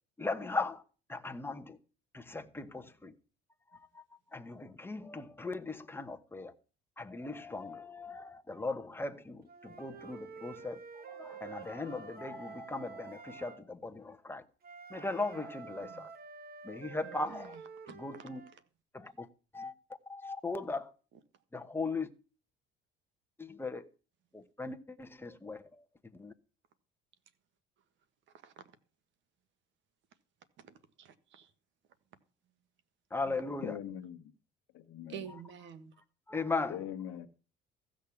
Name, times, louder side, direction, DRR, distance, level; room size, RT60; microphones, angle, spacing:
voice 1, 0.2-0.8 1.1-1.8 2.1-3.1 3.9-4.0 4.3-6.5 7.0-14.4 14.9-16.1 16.6-17.5 18.0-18.4 18.9-19.3 19.5-19.7 20.1-20.9 21.5-22.1 23.4-23.9 24.3-25.6 26.1-26.3 33.1-33.7 36.3-36.7, left 3 dB, 10° left, 1.1 m, -38 dB
Wind instrument woodwind instrument, 9.5-13.6 14.6-18.5, right 5 dB, 45° right, 1.4 m, -49 dB
voice 2, 17.0-17.6 17.9-18.2 18.5-18.6 28.4-28.7 30.6-31.5 33.2-33.7 35.1-35.9, right 8 dB, 65° right, 1.6 m, -50 dB
voice 3, 33.6-34.3 34.7-35.3 36.7-37.3, left 10 dB, 70° left, 1.2 m, -42 dB
15.5 x 6.5 x 7.1 m
cardioid pair, 110°, 21 cm